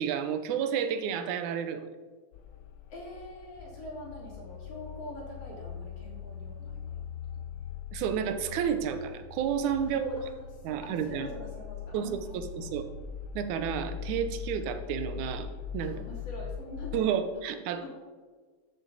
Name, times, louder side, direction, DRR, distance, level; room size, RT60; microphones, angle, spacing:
voice 1, 0.0-1.9 7.9-10.3 10.6-11.3 11.9-12.8 13.4-15.5 15.7-16.0 16.9-17.9, right 8 dB, 85° right, 9 dB, 2.2 m, -31 dB
sound 1, 2.3-17.0, left 7 dB, 80° left, 1.6 m, -41 dB
voice 2, 2.9-7.0 7.3-7.4 9.8-10.4 10.7-12.8 15.8-17.3 17.7-17.9, left 1 dB, 55° left, -3 dB, 3.6 m, -45 dB
13.0 x 6.2 x 4.0 m, 1.4 s
omnidirectional pair, 3.3 m